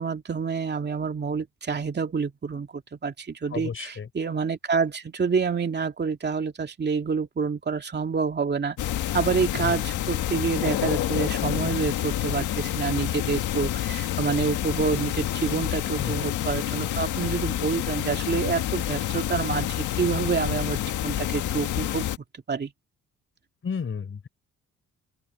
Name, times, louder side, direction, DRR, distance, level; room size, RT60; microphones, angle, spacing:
voice 1, 0.0-8.8 9.1-22.0 22.5-22.7, right 5 dB, 35° right, 2.6 m, -28 dB
voice 2, 3.5-4.1 9.5-9.8 16.0-16.2 23.6-24.3, left 6 dB, 45° left, 6.1 m, -32 dB
sound 1, 8.8-22.2, left 12 dB, 75° left, 1.8 m, -28 dB
open air
cardioid pair, 90°, 30 cm